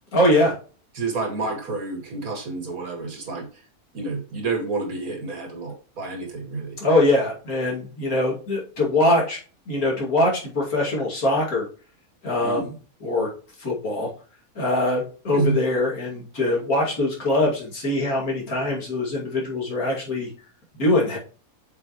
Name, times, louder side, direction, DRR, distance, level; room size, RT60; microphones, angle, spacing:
voice 1, 0.1-0.6 6.8-9.4 9.7-11.7 12.2-12.7 13.0-13.3 13.6-14.1 14.6-20.3 20.8-21.2, left 1 dB, 65° left, -3 dB, 2.8 m, -22 dB
voice 2, 1.0-3.5 3.9-6.8 12.4-12.7 15.3-15.6, right 3 dB, 65° right, 3 dB, 2.2 m, -29 dB
7.5 x 5.1 x 3.0 m, 0.38 s
omnidirectional pair, 1.6 m